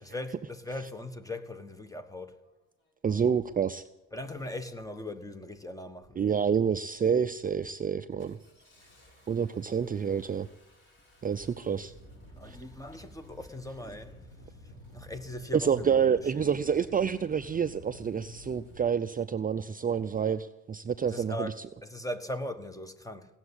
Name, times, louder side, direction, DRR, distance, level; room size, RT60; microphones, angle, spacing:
voice 1, 0.0-2.3 4.1-6.2 12.4-14.1 14.9-15.8 16.1-16.2 21.1-21.5 21.8-23.3, left 1 dB, 10° left, 1.4 m, -39 dB
Engine starting, 2.4-2.5 3.3-3.6 4.3-4.6 5.0-5.5 5.9-6.5 6.9-7.1 7.4-18.8, left 1 dB, 40° left, 6.9 m, -53 dB
voice 2, 3.0-3.8 6.1-8.4 9.3-10.5 11.2-11.9 12.5-12.6 15.5-21.7, right 7 dB, 30° right, 0.5 m, -28 dB
17.5 x 7.2 x 9.7 m
cardioid pair, 90°, 30 cm